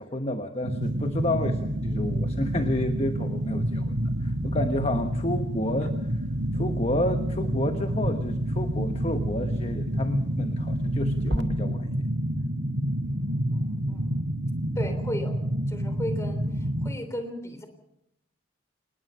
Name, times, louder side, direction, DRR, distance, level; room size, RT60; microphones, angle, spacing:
voice 1, 0.0-3.9 4.2-6.2 6.5-11.9, left 1 dB, 30° left, 7 dB, 1.1 m, -30 dB
sound 1, 0.6-16.9, right 1 dB, 80° right, 3.5 m, -28 dB
sound 2, 0.8-11.4, right 1 dB, 60° right, 1.9 m, -39 dB
voice 2, 13.1-14.2 14.8-15.4 15.7-17.7, left 1 dB, 15° left, 8 dB, 3.5 m, -36 dB
27.5 x 19.5 x 5.6 m, 0.79 s
head